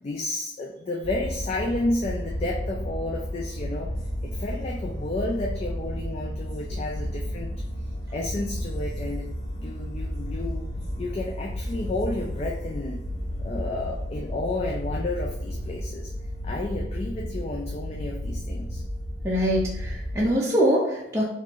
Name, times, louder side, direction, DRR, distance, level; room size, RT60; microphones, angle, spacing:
voice 1, 0.0-3.9 4.2-7.5 8.1-9.3 9.6-10.7 11.0-13.0 13.4-16.1 16.4-18.8, left 2 dB, 35° left, -1 dB, 0.3 m, -31 dB
sound 1, 1.0-20.3, equal, 50° left, 1.2 m, -32 dB
voice 2, 19.2-21.2, equal, 15° right, -5 dB, 0.5 m, -23 dB
3.7 x 2.5 x 3.0 m, 0.89 s
head